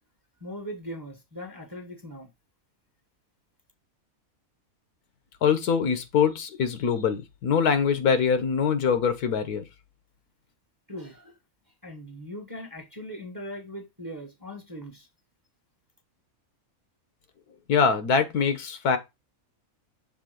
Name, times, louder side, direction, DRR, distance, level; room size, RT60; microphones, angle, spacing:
voice 1, 0.4-2.3 10.9-11.4 11.8-15.1, equal, 15° right, 1.1 m, -40 dB
voice 2, 5.4-9.6 17.7-19.0, left 6 dB, 80° left, 1.5 m, -23 dB
6.6 x 3.5 x 5.0 m
omnidirectional pair, 1.6 m